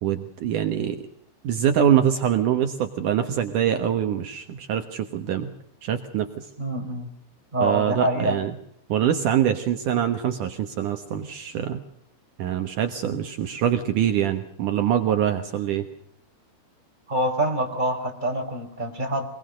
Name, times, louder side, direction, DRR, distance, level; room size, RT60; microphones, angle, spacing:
voice 1, 0.0-1.0 1.4-5.5 5.8-6.5 7.6-8.5 8.9-11.8 12.4-15.9, right 9 dB, 75° right, 7 dB, 1.8 m, -24 dB
voice 2, 6.6-7.1 7.5-8.4 17.1-19.3, right 1 dB, 10° right, 3 dB, 4.2 m, -25 dB
26.0 x 20.5 x 6.5 m, 0.68 s
omnidirectional pair, 5.7 m